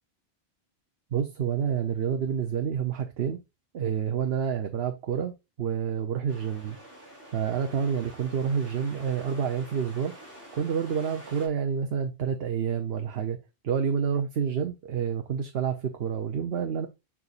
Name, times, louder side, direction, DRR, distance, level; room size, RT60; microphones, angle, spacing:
voice 1, 1.1-3.4 3.7-5.3 5.6-6.8 7.3-10.1 10.5-13.4 13.6-16.9, right 7 dB, 70° right, 6 dB, 1.0 m, -28 dB
sound 1, 6.3-11.5, right 1 dB, 60° left, 3.7 m, -48 dB
6.8 x 6.1 x 2.4 m, 0.24 s
omnidirectional pair, 1.1 m